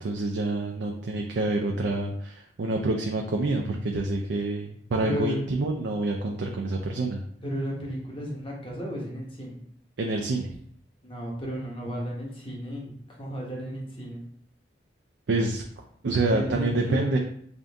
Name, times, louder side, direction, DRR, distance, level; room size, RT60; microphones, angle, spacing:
voice 1, 0.0-7.2 10.0-10.5 15.3-15.6 16.0-17.2, right 2 dB, 75° right, 1 dB, 0.4 m, -27 dB
voice 2, 5.0-5.5 7.4-9.6 11.0-14.2 16.3-17.1, equal, 30° left, -3 dB, 1.0 m, -33 dB
3.7 x 2.6 x 3.4 m, 0.64 s
head